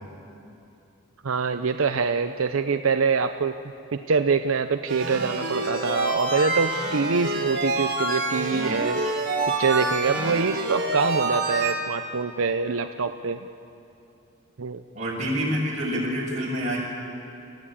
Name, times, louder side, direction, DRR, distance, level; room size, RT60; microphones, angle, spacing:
voice 1, 1.2-3.6 3.9-9.0 9.6-13.4 14.6-14.8, right 5 dB, 85° right, 8 dB, 0.6 m, -25 dB
sound 1, 4.9-11.7, right 2 dB, 50° right, 4.6 m, -27 dB
voice 2, 14.9-16.8, equal, 35° right, -4 dB, 6.2 m, -27 dB
27.0 x 15.0 x 8.7 m, 2.8 s
head